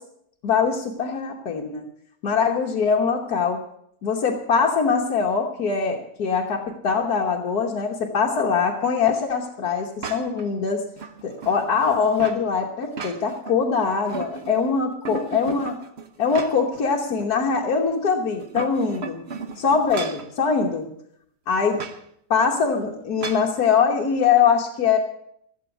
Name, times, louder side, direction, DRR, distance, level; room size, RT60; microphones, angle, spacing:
voice 1, 0.4-1.9 2.2-3.6 4.0-10.8 11.2-15.8 16.2-19.2 19.6-20.9 21.5-21.8 22.3-25.0, left 5 dB, 65° left, -1 dB, 1.7 m, -22 dB
sound 1, 10.0-10.5 11.0-12.4 12.8-13.6 13.9-14.7 15.0-16.8 17.2-17.3 18.3-20.3 21.7-22.0 23.2-23.5, right 4 dB, 45° right, 1.1 m, -35 dB
16.0 x 7.9 x 8.2 m, 0.72 s
omnidirectional pair, 1.8 m